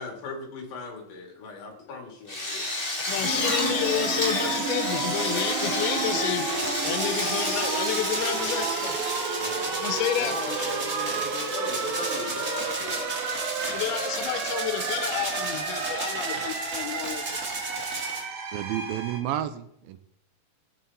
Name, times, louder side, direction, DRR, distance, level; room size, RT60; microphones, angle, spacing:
voice 1, 0.0-2.7 8.4-8.8 9.3-9.9 10.2-13.0 14.2-14.4, left 4 dB, 60° left, 1 dB, 3.5 m, -40 dB
Drill, 2.3-10.1, left 1 dB, 30° left, 0.9 m, -31 dB
voice 2, 3.1-9.0 9.8-10.6 13.7-17.2, left 11 dB, 90° left, 10 dB, 2.6 m, -30 dB
sound 1, 3.2-19.2, right 5 dB, 60° right, 2.7 m, -31 dB
sound 2, 6.5-18.2, right 2 dB, 30° right, 1.6 m, -34 dB
voice 3, 18.5-20.0, right 11 dB, 80° right, 10 dB, 2.4 m, -31 dB
14.5 x 7.6 x 4.1 m, 0.71 s
omnidirectional pair, 4.4 m